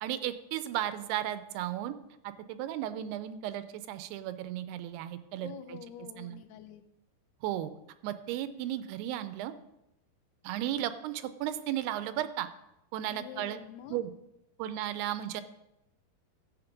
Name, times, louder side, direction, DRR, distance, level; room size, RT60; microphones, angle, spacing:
voice 1, 0.0-2.0 2.2-5.8 6.2-6.4 7.4-7.7 8.0-9.5 10.4-12.5 12.9-13.6 13.9-14.1 14.6-15.4, right 12 dB, 85° right, 12 dB, 2.7 m, -35 dB
voice 2, 5.4-6.8 13.1-14.0, left 9 dB, 85° left, 10 dB, 2.7 m, -46 dB
12.0 x 8.2 x 5.1 m, 0.89 s
omnidirectional pair, 4.6 m